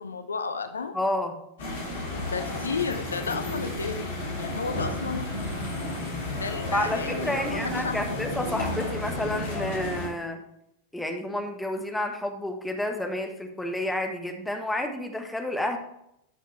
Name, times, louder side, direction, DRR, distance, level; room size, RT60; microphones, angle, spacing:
voice 1, 0.0-0.9 2.3-4.1 4.4-5.3 6.3-8.2, left 5 dB, 75° left, 9 dB, 0.7 m, -33 dB
voice 2, 0.9-1.3 6.7-10.4 10.9-15.8, left 1 dB, 5° left, 4 dB, 1.3 m, -30 dB
sound 1, 1.6-10.1, left 2 dB, 60° left, 3.3 m, -32 dB
11.5 x 6.6 x 3.3 m, 0.79 s
figure-of-eight pair, 90°, 0 cm